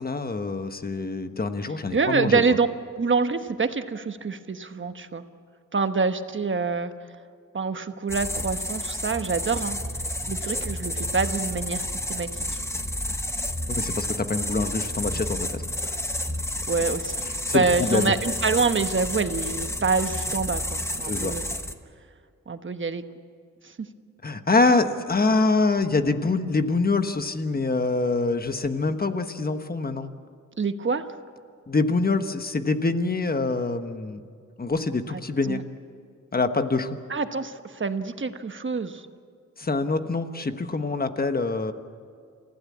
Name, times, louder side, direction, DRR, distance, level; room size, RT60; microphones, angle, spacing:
voice 1, 0.0-2.4 13.7-15.9 17.2-18.1 21.0-21.3 24.2-30.1 31.7-34.2 34.6-35.6 36.3-37.0 39.6-41.7, left 3 dB, 30° left, 8 dB, 1.2 m, -25 dB
voice 2, 1.9-2.7 3.0-5.2 5.7-6.9 7.5-9.8 10.3-12.4 16.7-17.2 17.5-21.5 22.5-23.0 23.6-23.7 30.6-31.1 35.1-35.2 35.5-35.6 37.1-39.1, right 4 dB, 40° right, 9 dB, 1.1 m, -26 dB
sound 1, 8.1-21.7, left 1 dB, 10° left, 1.2 m, -30 dB
29.0 x 15.5 x 8.5 m, 2.3 s
wide cardioid pair, 125°, 30 cm